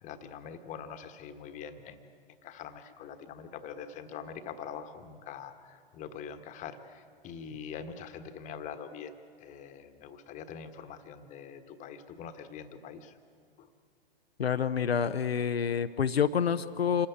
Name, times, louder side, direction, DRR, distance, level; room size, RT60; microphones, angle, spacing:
voice 1, 0.0-2.1 2.4-13.1 13.6-13.7, left 7 dB, 25° left, 9 dB, 1.3 m, -44 dB
voice 2, 14.4-17.1, left 7 dB, 75° left, 10 dB, 0.7 m, -28 dB
26.5 x 14.5 x 8.6 m, 2.3 s
figure-of-eight pair, 105°, 31 cm